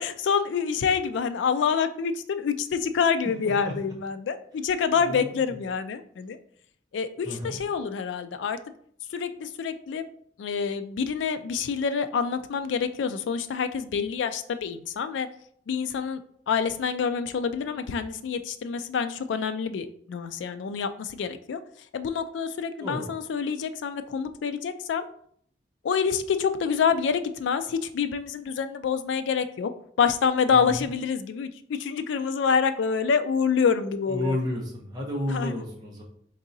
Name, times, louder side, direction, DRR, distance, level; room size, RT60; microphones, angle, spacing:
voice 1, 0.0-6.4 6.9-8.6 9.1-10.1 10.4-15.3 15.7-16.2 16.5-21.6 21.9-25.1 25.8-29.7 30.0-34.4 35.3-35.6, left 6 dB, 85° left, 10 dB, 0.3 m, -27 dB
voice 2, 7.2-7.6 22.8-23.1 30.5-30.8 34.1-36.0, left 1 dB, 20° right, -2 dB, 0.8 m, -31 dB
4.0 x 3.6 x 2.7 m, 0.63 s
head